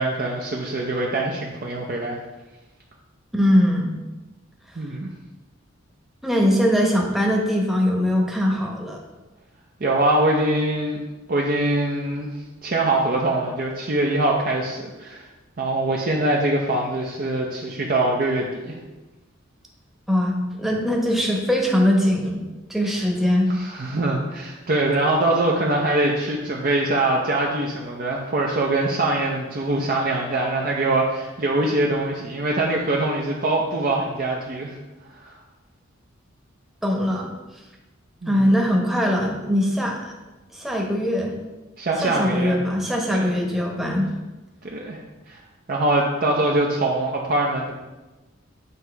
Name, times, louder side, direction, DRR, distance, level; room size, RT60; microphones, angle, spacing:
voice 1, 0.0-2.2 4.8-5.1 9.8-11.0 11.3-12.3 12.6-15.2 15.6-18.8 23.5-34.8 35.1-35.4 38.2-38.6 41.8-42.6 43.1-43.3 44.6-45.0 45.3-45.4 45.7-47.7, right 2 dB, 45° right, -2 dB, 0.6 m, -23 dB
voice 2, 3.3-3.9 6.2-9.0 20.1-22.4 22.7-23.5 36.8-37.3 38.3-40.1 40.5-41.3 42.0-44.1, equal, ahead, -1 dB, 0.9 m, -21 dB
8.1 x 2.8 x 4.5 m, 1.1 s
head